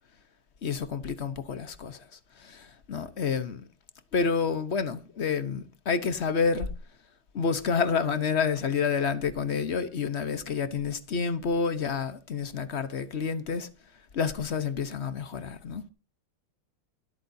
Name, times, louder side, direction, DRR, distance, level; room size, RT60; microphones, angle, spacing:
voice 1, 0.6-3.6 4.1-6.7 7.3-13.7 14.1-15.9, left 5 dB, 45° left, 0.9 m, -29 dB
24.0 x 8.5 x 2.7 m
omnidirectional pair, 2.3 m